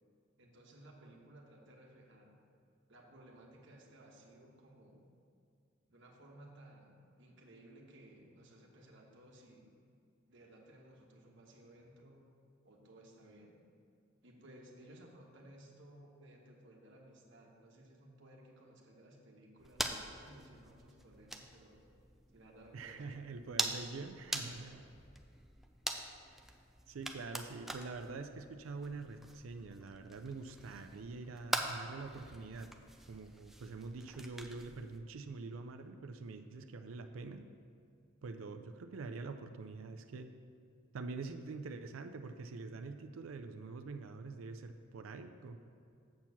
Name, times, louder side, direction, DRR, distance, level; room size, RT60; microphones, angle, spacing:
voice 1, 0.4-2.4 2.9-5.1 5.9-9.8 10.3-12.3 12.6-13.6 14.2-21.9 22.3-23.1 23.5-25.1, right 1 dB, 65° right, 0 dB, 1.2 m, -58 dB
sound 1, 19.6-35.0, right 1 dB, ahead, 0.4 m, -44 dB
voice 2, 22.7-24.9 26.9-32.7 33.1-37.4 38.2-40.3 40.9-45.6, right 3 dB, 85° right, 6 dB, 0.4 m, -45 dB
7.4 x 4.5 x 7.0 m, 2.4 s
head